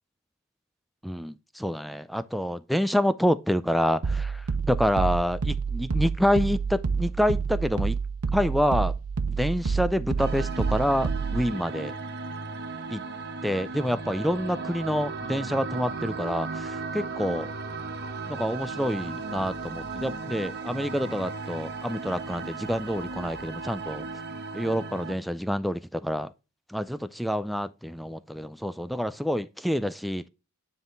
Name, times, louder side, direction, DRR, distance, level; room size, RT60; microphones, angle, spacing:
voice 1, 1.0-4.4 4.7-8.0 8.3-8.9 9.3-11.9 12.9-13.0 13.4-17.5 18.3-24.0 24.5-26.3 26.7-30.3, equal, ahead, 0.3 m, -27 dB
sound 1, 4.0-11.5, right 5 dB, 85° right, 0.6 m, -28 dB
sound 2, 10.2-25.1, right 4 dB, 50° right, 1.0 m, -36 dB
9.5 x 3.7 x 3.8 m
head